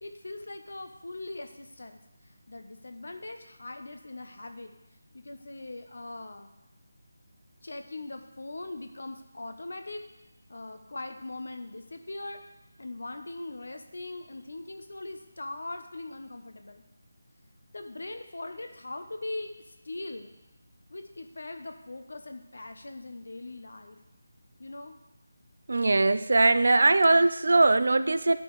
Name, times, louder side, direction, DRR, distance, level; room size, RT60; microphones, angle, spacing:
voice 1, 0.0-2.0 2.3-4.7 5.1-6.5 7.6-10.0 10.5-12.4 12.8-16.8 17.7-19.5 19.8-20.3 20.9-24.0 24.6-25.0, left 2 dB, 65° left, 6 dB, 0.8 m, -40 dB
voice 2, 25.7-28.4, right 2 dB, 55° right, 11 dB, 0.4 m, -21 dB
11.5 x 5.2 x 3.2 m, 0.97 s
figure-of-eight pair, 180°, 0 cm